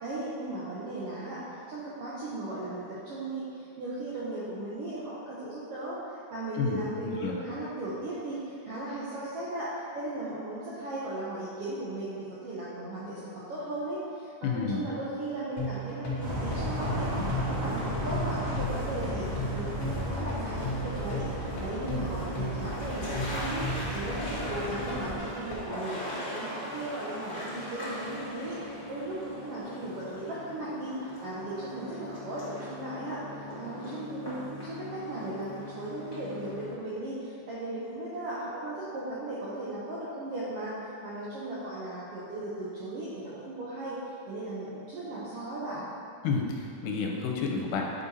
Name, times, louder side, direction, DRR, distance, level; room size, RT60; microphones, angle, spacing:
voice 1, 0.0-33.2 33.6-40.7 41.0-44.0 44.3-45.9, right 1 dB, 80° right, -8 dB, 1.3 m, -37 dB
voice 2, 6.6-7.4 14.4-14.8 46.2-48.0, left 4 dB, 85° left, 0 dB, 2.2 m, -30 dB
sound 1, 15.6-25.6, equal, 65° left, 1.2 m, -36 dB
sound 2, 16.2-25.2, left 1 dB, 65° right, 1.9 m, -34 dB
sound 3, 19.0-36.8, left 1 dB, 35° left, 1.1 m, -40 dB
6.8 x 5.1 x 2.7 m, 2.7 s
omnidirectional pair, 3.7 m